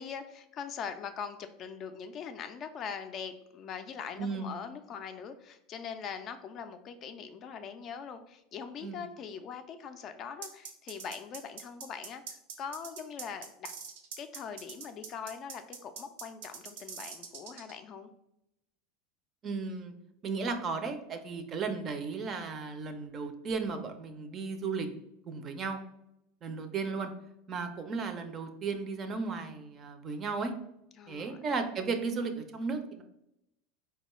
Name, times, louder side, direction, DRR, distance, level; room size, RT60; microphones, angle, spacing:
voice 1, 0.0-13.7 14.2-18.1 31.0-31.4, left 7 dB, 40° left, 8 dB, 0.3 m, -42 dB
voice 2, 4.2-4.5 8.8-9.0 19.4-19.9 20.2-24.9 25.3-25.8 26.4-27.1 27.5-30.5 31.1-33.0, right 4 dB, 35° right, 7 dB, 0.4 m, -35 dB
sound 1, 10.4-17.7, right 6 dB, 80° right, 0.6 m, -44 dB
4.0 x 2.2 x 3.0 m, 0.81 s
supercardioid pair, 130°, 0 cm